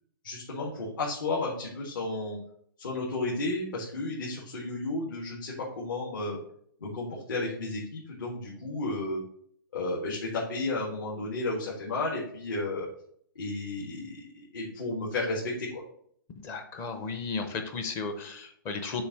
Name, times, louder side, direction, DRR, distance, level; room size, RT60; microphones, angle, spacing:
voice 1, 0.2-2.4 2.8-6.4 6.8-9.2 9.7-12.9 13.4-15.8, left 2 dB, 65° left, -4 dB, 1.8 m, -33 dB
voice 2, 16.4-19.0, left 4 dB, 20° left, 6 dB, 0.6 m, -34 dB
6.9 x 2.7 x 5.2 m, 0.64 s
hypercardioid pair, 160°, 12 cm